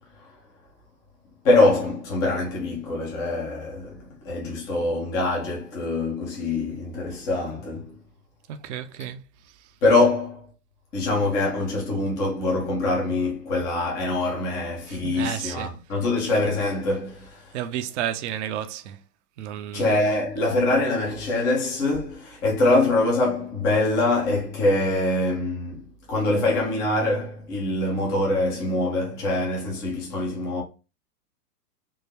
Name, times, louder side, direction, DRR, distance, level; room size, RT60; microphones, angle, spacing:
voice 1, 1.4-7.9 9.8-10.4 10.9-17.5 19.7-30.6, left 2 dB, 10° left, 0.3 m, -24 dB
voice 2, 8.5-9.2 14.9-15.8 17.5-19.0 19.4-20.0 20.4-20.5, right 10 dB, 50° right, 0.5 m, -32 dB
3.7 x 2.5 x 2.9 m
hypercardioid pair, 110°, 47 cm